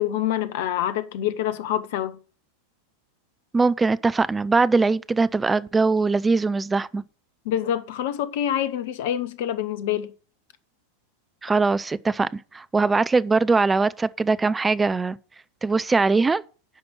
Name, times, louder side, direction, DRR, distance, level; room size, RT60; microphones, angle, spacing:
voice 1, 0.0-2.2 7.4-10.1, left 11 dB, 50° left, 0.9 m, -26 dB
voice 2, 3.5-7.0 11.4-15.2 15.6-16.4, right 4 dB, 10° right, 0.5 m, -21 dB
10.0 x 5.2 x 6.4 m
figure-of-eight pair, 90°, 0 cm